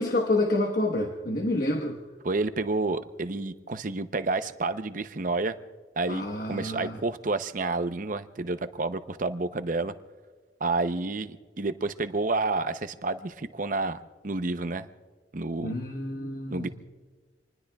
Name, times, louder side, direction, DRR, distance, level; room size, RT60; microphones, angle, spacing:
voice 1, 0.0-2.0 6.1-7.0 15.6-16.7, left 1 dB, 50° left, 2 dB, 1.2 m, -28 dB
voice 2, 2.2-5.6 6.0-9.9 10.6-14.9 15.3-15.7 16.5-16.7, right 3 dB, 45° right, 11 dB, 0.7 m, -30 dB
27.0 x 20.5 x 2.3 m, 1.4 s
head